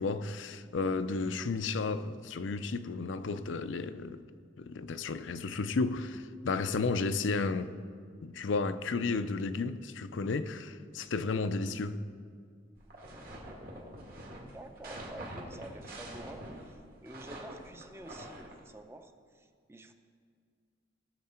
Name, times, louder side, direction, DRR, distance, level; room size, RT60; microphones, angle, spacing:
voice 1, 0.0-4.2 4.6-7.8 8.2-12.0, left 4 dB, 85° left, 0.5 m, -33 dB
sound 1, 12.8-18.6, right 1 dB, 50° right, 1.9 m, -45 dB
voice 2, 14.4-19.9, right 1 dB, 15° right, 0.5 m, -49 dB
18.0 x 6.7 x 4.3 m
head